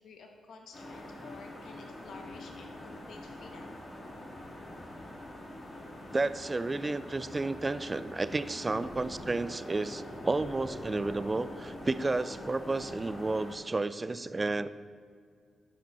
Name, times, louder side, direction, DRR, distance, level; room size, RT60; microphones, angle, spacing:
voice 1, 0.0-3.7 8.4-8.9, left 4 dB, 75° left, 2 dB, 1.2 m, -52 dB
sound 1, 0.7-13.6, left 1 dB, 40° left, 2.0 m, -44 dB
voice 2, 6.1-14.7, right 3 dB, 30° right, 14 dB, 0.4 m, -32 dB
12.0 x 5.1 x 4.6 m, 2.1 s
cardioid pair, 65°, 0 cm